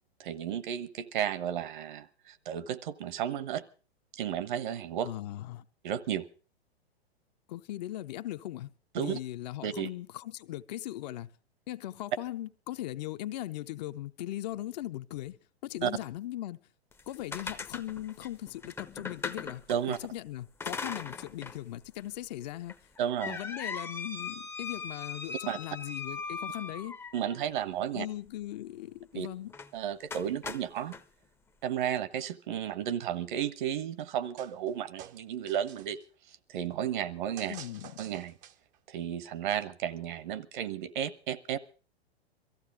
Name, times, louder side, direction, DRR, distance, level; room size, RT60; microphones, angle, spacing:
voice 1, 0.2-3.6 4.1-5.1 5.8-6.3 8.9-9.2 9.6-9.9 15.8-15.9 19.7-20.0 23.0-23.4 25.5-25.6 27.1-28.1 29.1-29.3 29.7-30.9 31.6-36.0 36.3-37.5 38.0-38.3 38.9-41.6, right 9 dB, 50° right, 1.2 m, -33 dB
voice 2, 5.0-5.6 7.5-8.7 9.0-11.3 11.7-16.6 17.1-19.6 20.0-22.8 23.3-27.0 27.9-29.5 37.5-38.0, left 14 dB, 40° left, 0.7 m, -39 dB
sound 1, 16.9-20.0 20.6-21.6 22.0-22.1 22.7-27.4 29.5-29.7 30.1-31.0, left 5 dB, 10° left, 0.7 m, -39 dB
sound 2, 34.4-34.7 35.0-36.1 37.4-38.8, right 10 dB, 25° right, 0.7 m, -49 dB
23.0 x 14.5 x 3.6 m
figure-of-eight pair, 110°, 32 cm